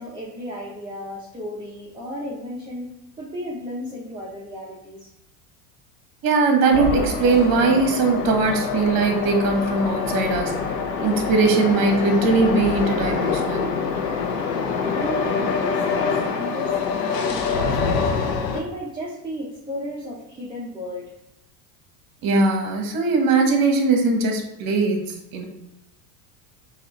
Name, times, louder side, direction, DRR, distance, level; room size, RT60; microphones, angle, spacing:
voice 1, 0.0-2.9 3.2-5.1 14.5-15.8 16.2-21.1, equal, 10° right, -5 dB, 0.7 m, -34 dB
voice 2, 6.2-10.6 11.0-13.8 22.2-25.5, right 3 dB, 45° right, 3 dB, 1.1 m, -20 dB
sound 1, 6.7-18.6, left 5 dB, 85° left, 0.8 m, -25 dB
4.1 x 2.6 x 4.0 m, 0.93 s
supercardioid pair, 105°, 47 cm